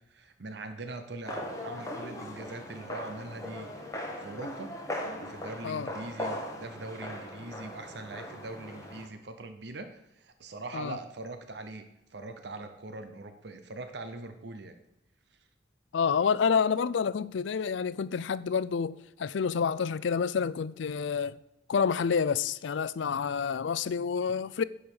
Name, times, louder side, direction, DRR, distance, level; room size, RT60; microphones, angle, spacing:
voice 1, 0.1-4.7 5.2-14.8, right 2 dB, 60° right, 0.8 m, -42 dB
sound 1, 1.2-9.1, left 1 dB, 15° left, 1.4 m, -39 dB
voice 2, 15.9-21.4 21.7-24.6, left 6 dB, 75° left, 0.4 m, -28 dB
10.5 x 4.9 x 7.0 m
head